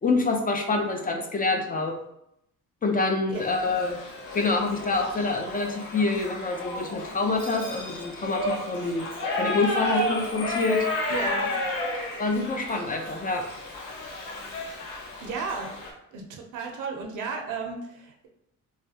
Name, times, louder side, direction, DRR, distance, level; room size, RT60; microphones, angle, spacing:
voice 1, 0.0-1.9 2.8-4.0 4.3-9.1 9.4-10.9 12.2-13.5, left 3 dB, 30° left, 3 dB, 0.5 m, -26 dB
Shout / Livestock farm animals working animals, 3.3-15.9, left 1 dB, 80° left, 0.8 m, -32 dB
voice 2, 11.1-11.7 15.2-15.7 16.1-18.3, right 4 dB, 85° right, 2 dB, 0.7 m, -34 dB
3.2 x 2.3 x 2.8 m, 0.79 s
cardioid pair, 90°, 30 cm